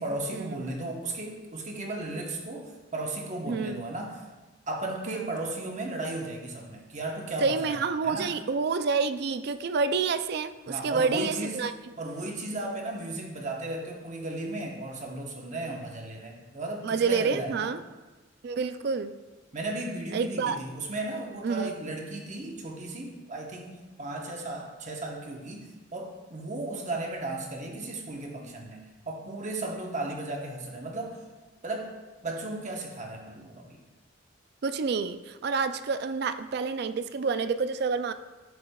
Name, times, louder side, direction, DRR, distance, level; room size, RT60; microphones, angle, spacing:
voice 1, 0.0-4.2 4.7-8.3 10.7-11.6 12.0-17.7 19.5-31.2 31.6-31.9 32.2-33.8, right 2 dB, 40° right, 1 dB, 1.1 m, -35 dB
voice 2, 3.5-3.8 5.1-5.3 7.4-11.7 16.8-17.8 18.4-19.2 20.1-20.6 21.4-21.7 34.6-38.1, right 5 dB, 55° right, 11 dB, 0.4 m, -28 dB
10.5 x 7.1 x 2.3 m, 1.2 s
head